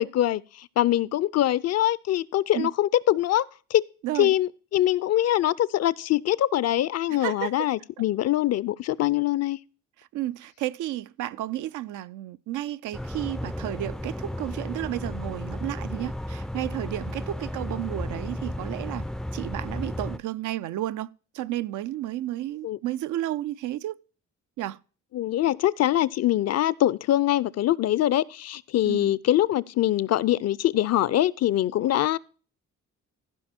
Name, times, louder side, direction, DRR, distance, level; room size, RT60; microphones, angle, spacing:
voice 1, 0.0-3.4 3.7-3.8 4.2-9.6 22.6-22.8 25.1-32.2, left 13 dB, 55° left, 0.5 m, -23 dB
voice 2, 4.0-4.3 7.1-7.7 10.1-19.0 19.3-21.1 21.3-24.0 24.6-24.8 28.8-29.1, right 14 dB, 85° right, 0.5 m, -32 dB
sound 1, 12.9-20.2, left 1 dB, ahead, 0.3 m, -34 dB
15.0 x 5.3 x 4.3 m
cardioid pair, 90°, 30 cm